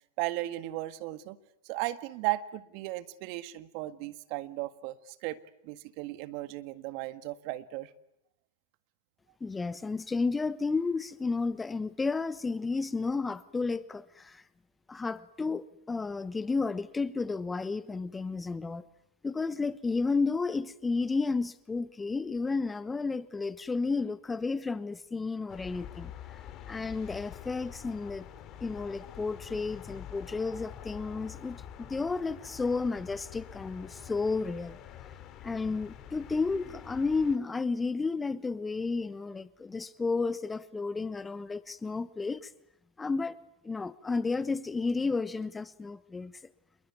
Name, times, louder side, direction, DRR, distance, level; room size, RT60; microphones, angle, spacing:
voice 1, 0.2-1.4 1.6-5.4 5.6-7.9, right 17 dB, 50° right, 1.7 m, -36 dB
voice 2, 9.4-14.4 14.9-18.9 19.2-26.1 26.7-28.3 28.6-34.8 35.0-35.1 35.4-42.5 43.0-43.3 43.6-46.3, left 4 dB, 15° left, 1.1 m, -32 dB
sound 1, 25.5-37.4, left 10 dB, 35° left, 2.9 m, -46 dB
27.5 x 22.0 x 9.6 m
hypercardioid pair, 105°, 0 cm